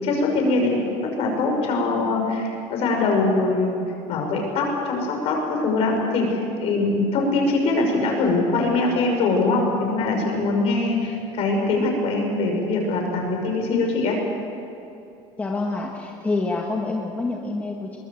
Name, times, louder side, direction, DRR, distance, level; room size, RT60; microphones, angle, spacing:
voice 1, 0.0-3.8 4.1-14.2, left 3 dB, 45° left, 2 dB, 5.9 m, -22 dB
voice 2, 15.4-18.0, left 3 dB, 10° left, 0 dB, 1.5 m, -27 dB
22.5 x 21.0 x 8.0 m, 2.7 s
cardioid pair, 170°, 14 cm